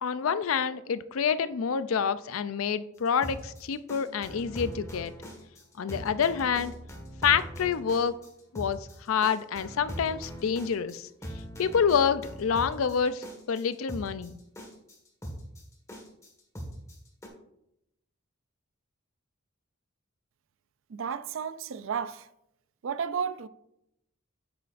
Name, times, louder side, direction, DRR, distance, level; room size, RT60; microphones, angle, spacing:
voice 1, 0.0-5.1 5.8-6.7 7.2-8.1 8.5-8.8 9.1-11.1 11.6-14.4, left 7 dB, 75° left, 0.4 m, -27 dB
sound 1, 3.0-17.3, equal, 15° left, 1.6 m, -41 dB
voice 2, 20.9-22.3 22.8-23.5, right 7 dB, 65° right, 0.4 m, -32 dB
9.1 x 8.7 x 2.5 m
head